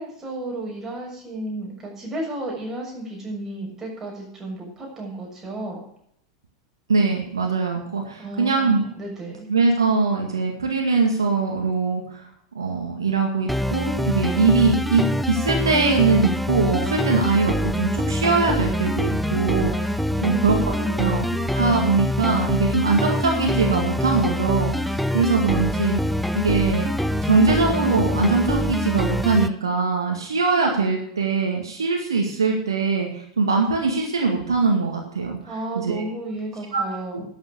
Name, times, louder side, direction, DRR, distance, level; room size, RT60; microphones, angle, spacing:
voice 1, 0.0-5.8 8.2-9.5 20.1-21.1 35.5-37.2, right 1 dB, 15° right, -2 dB, 6.6 m, -33 dB
voice 2, 6.9-8.8 9.5-12.2 12.6-21.3 21.5-26.0 26.3-26.9 27.2-35.4 35.7-36.0 36.7-36.8, right 4 dB, 75° right, 1 dB, 2.0 m, -22 dB
sound 1, 13.5-29.5, equal, ahead, 0.6 m, -25 dB
12.0 x 8.1 x 6.3 m, 0.71 s
figure-of-eight pair, 90°, 2 cm